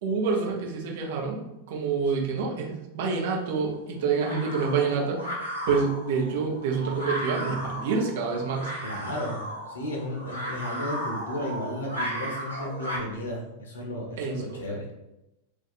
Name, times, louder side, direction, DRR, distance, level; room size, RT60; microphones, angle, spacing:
voice 1, 0.0-8.7 14.2-14.9, right 5 dB, 55° right, -1 dB, 0.7 m, -28 dB
sound 1, 3.1-13.0, equal, 85° right, 0.8 m, -36 dB
voice 2, 8.8-14.9, left 1 dB, 65° left, 0 dB, 0.6 m, -34 dB
2.6 x 2.2 x 4.0 m, 0.93 s
figure-of-eight pair, 90°, 0 cm